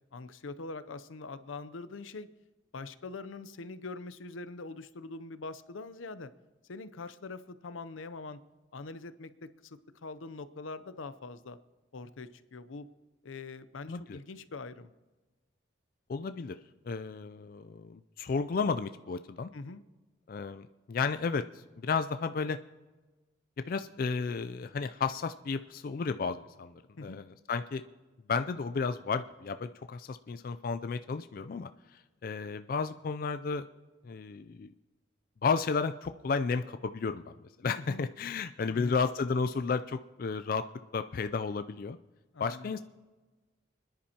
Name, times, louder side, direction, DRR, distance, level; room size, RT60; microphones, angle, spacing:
voice 1, 0.1-2.3 2.7-6.3 6.7-8.4 8.7-11.6 11.9-12.9 13.2-14.9 19.5-19.8 27.0-27.2 37.8-38.0 38.7-39.1 42.3-42.8, left 3 dB, 90° left, 13 dB, 0.6 m, -43 dB
voice 2, 13.9-14.2 16.1-16.6 16.8-19.5 20.3-21.4 21.8-22.6 23.7-27.8 28.3-33.7 34.0-34.7 35.4-40.7 40.9-42.0 42.4-42.8, left 5 dB, 50° left, 10 dB, 0.3 m, -33 dB
29.0 x 10.5 x 2.9 m, 1.2 s
head